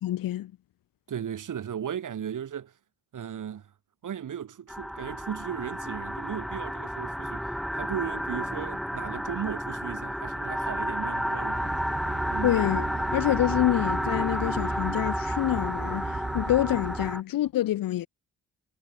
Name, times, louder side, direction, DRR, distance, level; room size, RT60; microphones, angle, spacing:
voice 1, 0.0-0.5 12.4-12.8 13.1-18.1, left 13 dB, 75° left, 1.8 m, -26 dB
voice 2, 1.1-2.7 3.1-3.7 4.0-11.7 12.3-12.5, right 9 dB, 60° right, 3.8 m, -36 dB
sound 1, 4.7-17.2, equal, ahead, 1.6 m, -31 dB
sound 2, 11.5-17.1, right 3 dB, 30° right, 6.0 m, -36 dB
hypercardioid pair, 45°, 34 cm